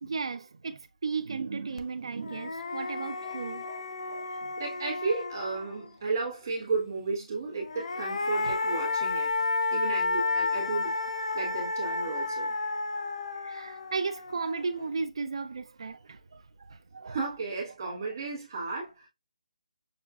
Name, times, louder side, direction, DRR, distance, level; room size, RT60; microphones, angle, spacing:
voice 1, 0.0-4.5 8.4-8.5 13.4-16.4 16.7-17.2, right 4 dB, 45° right, 0.3 m, -35 dB
sound 1, 1.8-1.9 2.2-5.9 7.5-14.8, left 3 dB, 50° left, 0.4 m, -32 dB
voice 2, 4.6-11.0 11.3-12.5 17.1-19.1, right 4 dB, 30° right, 1.1 m, -33 dB
5.9 x 2.4 x 2.3 m
hypercardioid pair, 180°, 4 cm